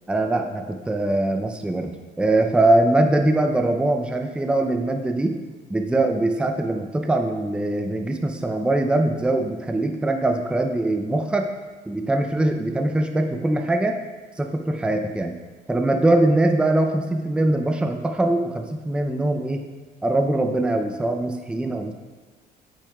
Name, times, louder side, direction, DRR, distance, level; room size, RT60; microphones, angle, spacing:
voice 1, 0.1-1.9 2.2-5.4 5.7-11.5 11.9-14.0 14.4-15.3 15.7-19.6 20.0-21.9, right 2 dB, 5° right, 4 dB, 0.5 m, -22 dB
8.3 x 6.1 x 2.3 m, 1.3 s
cardioid pair, 110°, 17 cm